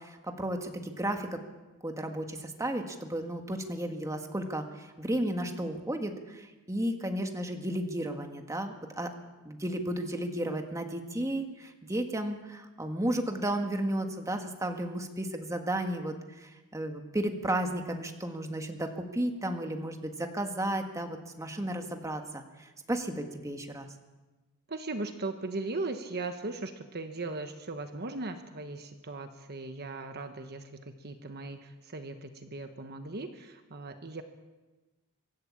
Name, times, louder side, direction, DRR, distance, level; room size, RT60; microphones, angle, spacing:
voice 1, 0.0-1.4 1.8-9.1 9.5-23.9, right 1 dB, 15° right, 4 dB, 1.8 m, -33 dB
voice 2, 24.7-34.2, right 2 dB, 50° right, 7 dB, 1.3 m, -38 dB
24.5 x 12.5 x 8.6 m, 1.2 s
head